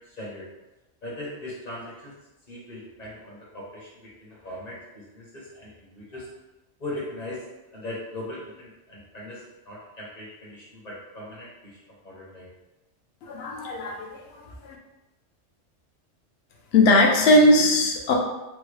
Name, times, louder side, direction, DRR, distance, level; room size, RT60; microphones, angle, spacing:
voice 1, 0.2-0.5 1.0-2.1 2.5-6.3 6.8-7.5 7.7-11.8 12.0-12.5, left 1 dB, 40° left, -5 dB, 0.9 m, -39 dB
voice 2, 13.2-14.8 16.7-18.1, left 1 dB, 65° left, 1 dB, 0.7 m, -20 dB
3.5 x 2.0 x 3.2 m, 1.0 s
omnidirectional pair, 1.3 m